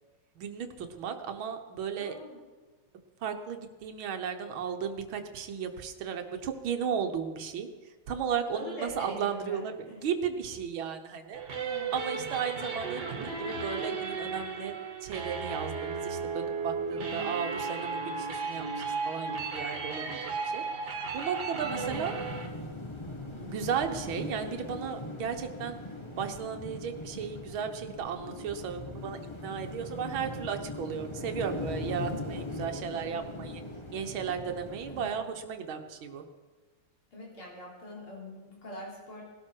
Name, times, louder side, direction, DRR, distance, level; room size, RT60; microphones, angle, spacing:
voice 1, 0.4-2.2 3.2-11.4 11.9-20.6 21.1-22.1 23.3-25.8 26.2-33.6 33.9-36.3, right 7 dB, 75° right, 6 dB, 1.9 m, -35 dB
voice 2, 2.0-2.4 8.5-10.1 11.5-12.1 17.0-17.3 21.5-22.2 34.9-35.2 37.1-39.2, left 1 dB, 85° left, -3 dB, 4.3 m, -44 dB
sound 1, 11.3-22.5, right 4 dB, 55° right, 2.2 m, -35 dB
sound 2, 21.6-35.1, left 2 dB, 15° left, 1.1 m, -40 dB
18.5 x 12.5 x 4.6 m, 1.3 s
omnidirectional pair, 2.3 m